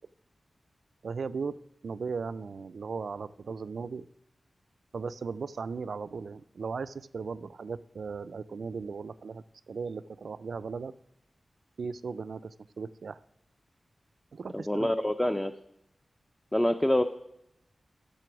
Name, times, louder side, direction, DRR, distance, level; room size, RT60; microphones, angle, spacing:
voice 1, 1.0-4.1 4.9-10.9 11.8-13.2 14.3-14.9, right 5 dB, 80° right, 16 dB, 0.3 m, -37 dB
voice 2, 14.5-15.5 16.5-17.0, left 1 dB, 10° left, 8 dB, 0.4 m, -26 dB
7.7 x 6.8 x 6.0 m, 0.82 s
wide cardioid pair, 105°, 0 cm